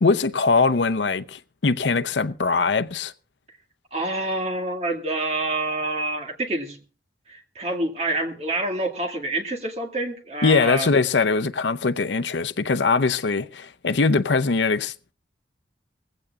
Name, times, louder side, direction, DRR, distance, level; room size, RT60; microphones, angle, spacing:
voice 1, 0.0-3.1 10.4-15.1, left 4 dB, 90° left, 0.6 m, -22 dB
voice 2, 3.9-6.8 7.3-10.9, right 2 dB, 35° right, 2.0 m, -27 dB
19.5 x 15.5 x 2.4 m
head